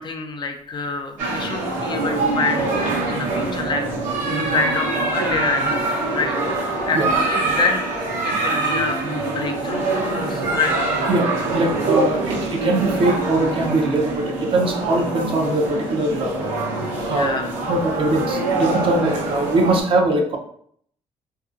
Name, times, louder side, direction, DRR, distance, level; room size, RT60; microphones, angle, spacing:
voice 1, 0.0-2.7 3.1-3.9 4.4-7.9 8.2-10.7 17.1-17.5, left 4 dB, 40° left, 5 dB, 0.4 m, -27 dB
sound 1, 1.2-19.8, right 2 dB, 85° right, 0.8 m, -24 dB
voice 2, 11.1-16.3 17.0-17.4 17.7-20.4, right 2 dB, 45° right, 2 dB, 0.6 m, -21 dB
2.7 x 2.6 x 2.4 m, 0.64 s
cardioid pair, 90°, 12 cm